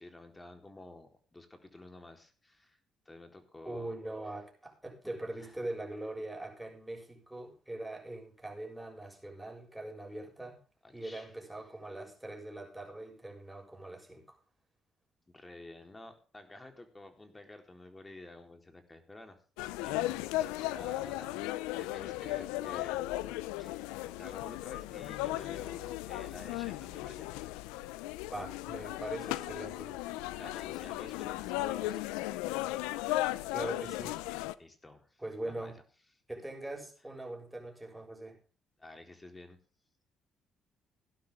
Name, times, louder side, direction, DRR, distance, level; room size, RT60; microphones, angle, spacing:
voice 1, 0.0-2.8 3.1-3.9 5.0-5.6 10.8-11.3 15.3-19.4 19.8-23.8 24.2-27.3 30.3-32.5 34.6-35.7 38.8-39.6, left 2 dB, 20° left, 5 dB, 4.2 m, -51 dB
voice 2, 3.6-10.6 10.9-14.4 28.3-30.0 33.5-34.2 35.2-35.8 36.3-38.4, right 1 dB, 10° right, 2 dB, 7.0 m, -42 dB
sound 1, 19.6-34.5, left 17 dB, 85° left, 0.6 m, -36 dB
17.0 x 11.5 x 3.8 m, 0.37 s
hypercardioid pair, 55°, 0 cm